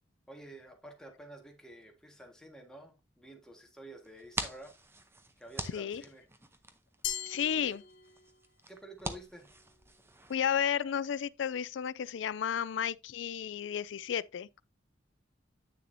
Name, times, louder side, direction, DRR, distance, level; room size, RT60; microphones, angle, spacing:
voice 1, 0.3-4.7 5.4-6.3 7.5-7.8 8.7-9.5, right 1 dB, 5° left, 1.6 m, -50 dB
sound 1, 4.0-10.3, right 2 dB, 15° right, 0.8 m, -44 dB
Glass, 7.0-8.5, left 10 dB, 70° left, 1.1 m, -40 dB
voice 2, 7.3-7.8 10.3-14.6, left 8 dB, 90° left, 0.4 m, -32 dB
9.0 x 6.7 x 2.7 m
head